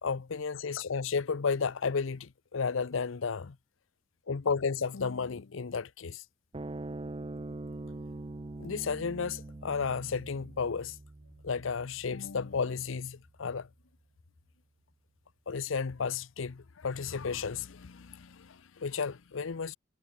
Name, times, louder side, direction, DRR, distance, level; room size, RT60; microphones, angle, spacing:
voice 1, 0.0-3.6 4.3-6.2 8.6-10.9 11.4-13.7 15.5-19.8, left 5 dB, 75° left, 0.6 m, -33 dB
sound 1, 6.5-13.2, right 2 dB, 25° right, 0.5 m, -43 dB
head